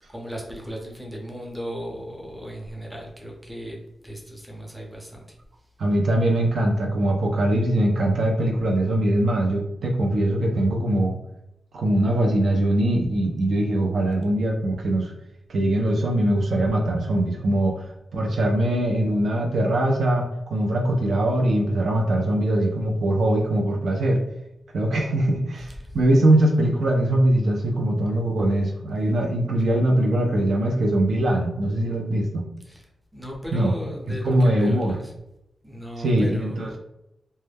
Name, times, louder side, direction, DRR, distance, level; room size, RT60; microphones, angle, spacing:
voice 1, 0.1-3.8 4.0-5.2 25.6-26.0 32.6-32.8 33.1-35.1 35.6-36.8, equal, 5° right, -1 dB, 0.6 m, -36 dB
voice 2, 5.8-11.2 11.7-15.1 15.5-24.2 24.7-32.4 33.5-33.7 34.1-35.0 36.0-36.8, right 1 dB, 65° right, 1 dB, 0.4 m, -22 dB
2.1 x 2.1 x 3.2 m, 0.83 s
wide cardioid pair, 105°, 0 cm